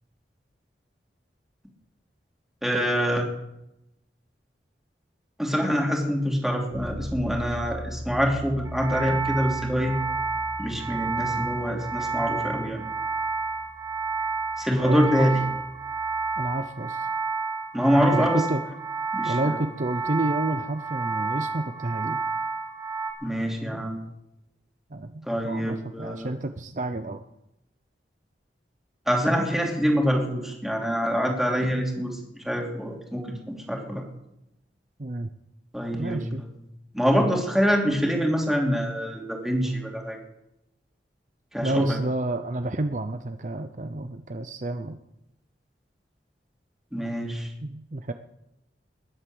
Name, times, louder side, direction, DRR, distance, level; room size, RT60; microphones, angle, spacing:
voice 1, 2.6-3.2 5.4-9.9 10.6-12.8 14.6-15.4 17.7-18.4 19.1-19.6 23.2-24.0 25.2-26.3 29.1-34.0 35.7-36.2 36.9-40.2 41.5-42.0 46.9-47.5, equal, ahead, 0 dB, 3.0 m, -25 dB
Bass guitar, 6.7-16.5, equal, 80° right, 3.2 m, -40 dB
sound 1, 8.7-23.1, right 4 dB, 15° right, 1.7 m, -30 dB
voice 2, 14.7-15.1 16.4-17.1 18.1-18.6 19.3-22.2 24.9-27.2 35.0-35.3 36.0-36.4 41.6-45.0 47.6-48.1, right 2 dB, 45° right, 8 dB, 0.7 m, -30 dB
20.5 x 8.1 x 7.8 m, 0.88 s
head